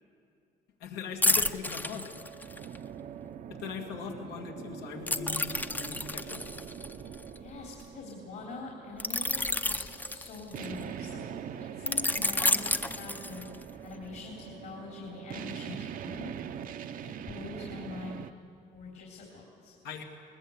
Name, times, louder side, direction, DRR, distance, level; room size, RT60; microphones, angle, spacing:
voice 1, 0.8-2.2 3.5-6.4 19.8-20.0, left 6 dB, 85° left, 3 dB, 2.4 m, -40 dB
sound 1, 1.2-2.8 5.1-7.8 9.0-10.8 11.9-13.7 14.1-14.3, left 2 dB, 10° left, 0.6 m, -30 dB
sound 2, 1.2-18.3, right 9 dB, 55° right, 0.7 m, -43 dB
voice 2, 7.4-11.2 11.5-13.4 13.8-16.3 17.0-18.4 18.7-19.7, left 4 dB, 65° left, -2 dB, 3.8 m, -44 dB
21.0 x 19.5 x 8.1 m, 2.5 s
cardioid pair, 110°, 17 cm